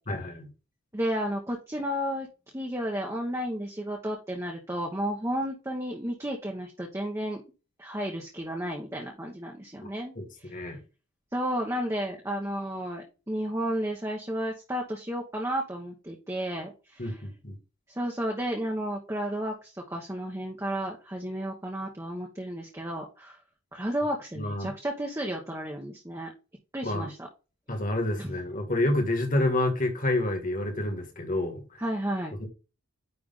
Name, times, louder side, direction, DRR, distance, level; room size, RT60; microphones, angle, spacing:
voice 1, 0.1-0.5 10.2-10.8 17.0-17.6 24.3-24.7 26.8-27.1 27.7-31.8 32.4-32.5, left 1 dB, 40° left, 2.1 m, -29 dB
voice 2, 0.9-2.3 2.5-7.4 7.8-10.1 11.3-17.1 17.9-23.4 23.7-26.3 26.7-27.3 28.2-28.3 31.8-32.4, equal, 15° right, 1.1 m, -32 dB
9.8 x 3.5 x 3.7 m
head